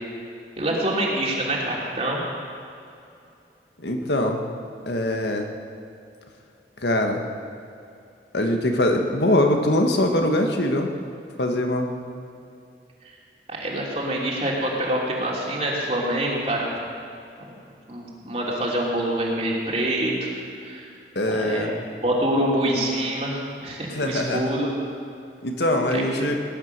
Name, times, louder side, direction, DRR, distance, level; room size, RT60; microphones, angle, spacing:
voice 1, 0.6-2.2 13.5-16.8 17.4-17.5 17.9-20.3 20.6-20.9 21.3-24.7 25.9-26.0, right 1 dB, 35° right, -3 dB, 3.1 m, -26 dB
voice 2, 3.8-4.5 4.9-5.5 6.8-7.3 8.3-10.9 11.4-11.9 21.2-21.8 23.9-24.5 25.4-26.4, left 1 dB, 75° left, 3 dB, 1.7 m, -22 dB
19.0 x 11.0 x 6.8 m, 2.6 s
head